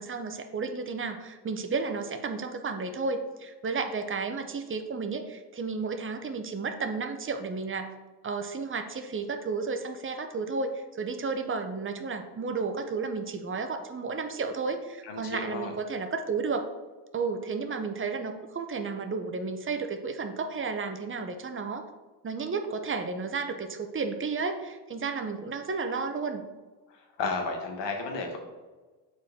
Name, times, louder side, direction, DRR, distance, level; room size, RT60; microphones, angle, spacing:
voice 1, 0.0-7.9 8.2-16.7 17.1-21.9 22.2-26.4, right 4 dB, 30° right, 6 dB, 0.8 m, -32 dB
voice 2, 15.0-15.7 26.9-28.4, left 4 dB, 85° left, 3 dB, 1.3 m, -33 dB
7.2 x 4.5 x 3.6 m, 1.3 s
cardioid pair, 65°, 42 cm